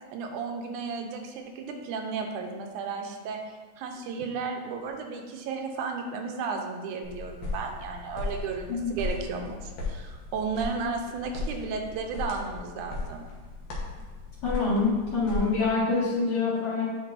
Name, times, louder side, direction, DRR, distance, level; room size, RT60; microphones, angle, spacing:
voice 1, 0.1-3.4 3.8-13.3, right 4 dB, 90° right, 3 dB, 2.1 m, -34 dB
sound 1, 7.0-15.7, left 3 dB, 70° left, 2.2 m, -37 dB
voice 2, 14.4-16.9, left 3 dB, 50° left, -10 dB, 2.4 m, -26 dB
9.1 x 4.7 x 2.5 m, 1.3 s
omnidirectional pair, 3.5 m